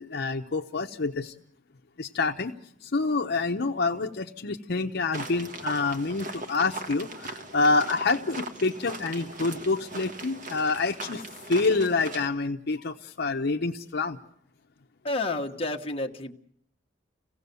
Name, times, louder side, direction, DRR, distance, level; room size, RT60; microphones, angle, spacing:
voice 1, 0.0-1.3 2.0-2.5 2.8-11.2 11.5-14.2, left 3 dB, 60° left, 4 dB, 0.8 m, -27 dB
sound 1, 5.1-12.3, right 2 dB, 45° right, 1.5 m, -39 dB
voice 2, 15.0-16.3, left 2 dB, 30° left, 2 dB, 1.3 m, -30 dB
26.5 x 17.0 x 6.9 m, 0.72 s
head